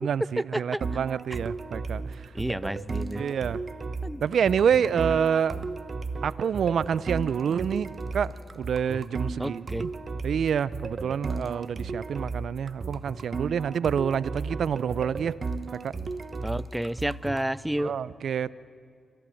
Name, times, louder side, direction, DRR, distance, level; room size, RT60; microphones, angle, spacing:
voice 1, 0.0-2.2 3.2-3.6 4.2-5.7 6.2-9.9 10.2-15.4 15.8-16.0 17.8-18.5, right 7 dB, 70° right, 20 dB, 0.5 m, -27 dB
sound 1, 0.8-17.5, right 4 dB, 50° right, 1.1 m, -35 dB
voice 2, 2.3-3.2 4.0-4.2 9.4-9.9 16.4-17.9, right 1 dB, 10° right, 21 dB, 0.5 m, -30 dB
26.5 x 14.5 x 7.7 m, 2.1 s
supercardioid pair, 40°, 0 cm